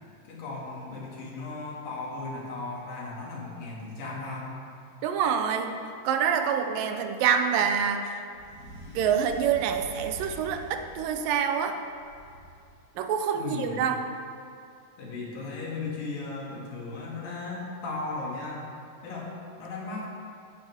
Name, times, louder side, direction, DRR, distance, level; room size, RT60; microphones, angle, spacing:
voice 1, 0.3-4.5 13.3-13.8 15.0-18.7 19.0-20.1, left 3 dB, 90° left, -4 dB, 4.0 m, -36 dB
voice 2, 5.0-5.8 6.1-8.2 8.9-11.8 13.0-14.0, right 7 dB, 90° right, 7 dB, 2.5 m, -26 dB
sound 1, 8.3-11.3 11.9-12.8, right 1 dB, 55° left, 3.6 m, -45 dB
15.0 x 12.5 x 3.6 m, 2.4 s
omnidirectional pair, 3.8 m